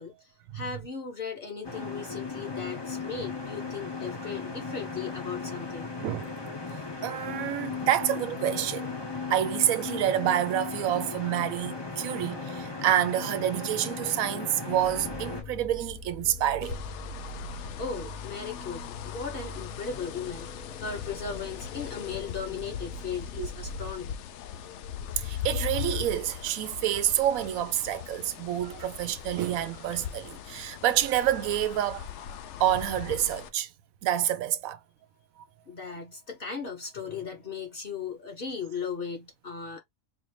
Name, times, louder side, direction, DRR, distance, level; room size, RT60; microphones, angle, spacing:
voice 1, 0.0-5.9 17.8-24.1 35.6-39.8, left 6 dB, 45° left, 1.1 m, -37 dB
sound 1, 1.6-15.4, left 4 dB, 25° left, 0.6 m, -36 dB
voice 2, 6.0-6.4 7.0-8.9 9.3-16.8 23.4-23.5 25.2-32.1 32.6-33.7 34.0-34.8, right 12 dB, 85° right, 1.0 m, -28 dB
sound 2, 14.7-23.9, left 1 dB, 90° left, 1.4 m, -42 dB
sound 3, 16.6-33.5, left 9 dB, 65° left, 0.8 m, -39 dB
4.2 x 2.5 x 3.1 m
omnidirectional pair, 1.4 m